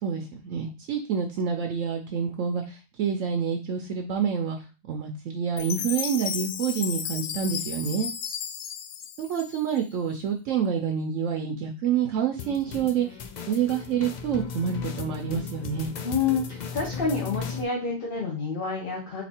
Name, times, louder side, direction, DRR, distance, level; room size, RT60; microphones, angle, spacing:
voice 1, 0.0-4.6 4.9-8.1 9.2-13.2 13.5-15.9, right 7 dB, 75° right, 3 dB, 1.0 m, -28 dB
Chime, 5.6-9.9, left 8 dB, 80° left, 0.9 m, -34 dB
sound 1, 12.4-17.6, left 6 dB, 65° left, 0.4 m, -36 dB
voice 2, 16.0-19.2, left 5 dB, 45° left, -3 dB, 1.2 m, -28 dB
4.1 x 2.7 x 4.3 m, 0.31 s
omnidirectional pair, 1.3 m